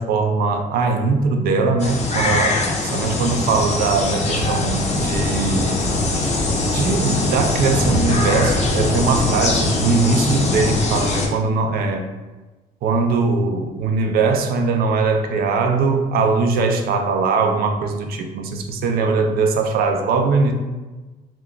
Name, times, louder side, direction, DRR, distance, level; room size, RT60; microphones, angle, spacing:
voice 1, 0.0-5.8 6.6-12.1 12.8-20.5, right 4 dB, 65° right, 4 dB, 0.4 m, -20 dB
sound 1, 1.8-11.3, left 2 dB, 40° left, 0.6 m, -21 dB
2.3 x 2.2 x 3.6 m, 1.2 s
cardioid pair, 110°, 17 cm